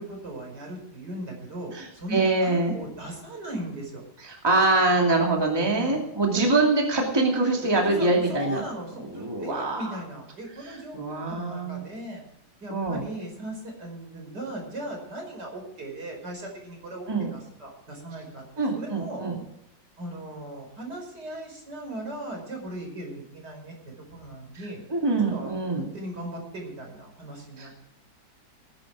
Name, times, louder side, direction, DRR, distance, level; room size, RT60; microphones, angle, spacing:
voice 1, 0.0-4.0 4.8-5.1 5.8-6.0 6.3-6.5 7.7-12.2 12.6-19.2 20.0-24.8 25.2-25.6 25.9-27.8, right 1 dB, 60° right, 1 dB, 5.7 m, -38 dB
voice 2, 1.7-2.7 4.2-8.6 9.1-10.0 10.9-11.8 12.7-13.0 17.1-17.3 18.6-19.4 24.9-25.9 27.6-27.8, right 2 dB, 10° right, 0 dB, 2.4 m, -24 dB
20.0 x 10.5 x 4.9 m, 0.80 s
omnidirectional pair, 2.1 m